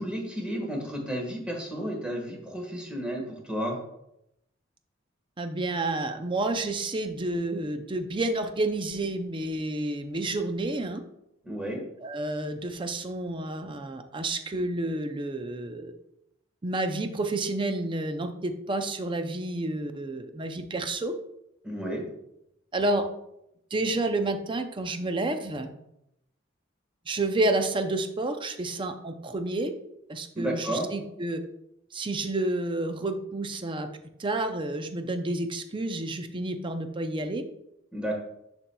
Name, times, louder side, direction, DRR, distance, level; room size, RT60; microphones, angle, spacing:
voice 1, 0.0-3.8 11.4-11.8 21.6-22.0 30.3-30.9 37.9-38.1, equal, 5° right, -1 dB, 1.5 m, -32 dB
voice 2, 5.4-11.0 12.0-15.9 16.6-21.1 22.7-23.0 23.7-25.7 27.1-29.7 30.1-31.4 31.9-33.9 34.2-37.4, right 2 dB, 25° right, 7 dB, 0.5 m, -30 dB
10.5 x 4.4 x 2.3 m, 0.81 s
head